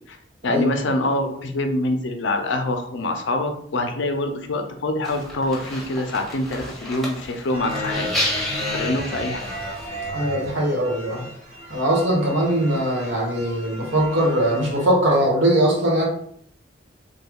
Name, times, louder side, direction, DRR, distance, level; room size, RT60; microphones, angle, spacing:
voice 1, 0.4-8.1 8.7-9.5, left 2 dB, 80° left, 5 dB, 0.5 m, -25 dB
sound 1, 5.0-10.1, left 1 dB, ahead, 0.9 m, -31 dB
sound 2, 7.5-14.8, equal, 35° right, 1.2 m, -34 dB
voice 2, 10.1-11.3 11.7-16.1, right 1 dB, 90° right, -2 dB, 1.2 m, -21 dB
3.3 x 2.2 x 3.5 m, 0.63 s
head